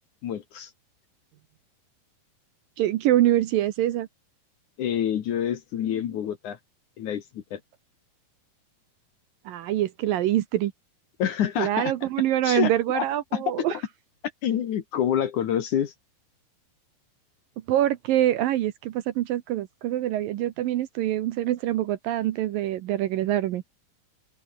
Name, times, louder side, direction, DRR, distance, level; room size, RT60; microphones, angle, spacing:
voice 1, 0.2-0.7 4.8-6.6 7.0-7.6 11.2-11.9 12.4-13.0 13.3-13.7 14.4-15.9, left 9 dB, 60° left, 2.5 m, -27 dB
voice 2, 2.8-4.1 9.5-10.7 11.6-13.8 17.7-23.6, right 13 dB, 70° right, 2.4 m, -25 dB
open air
omnidirectional pair, 4.7 m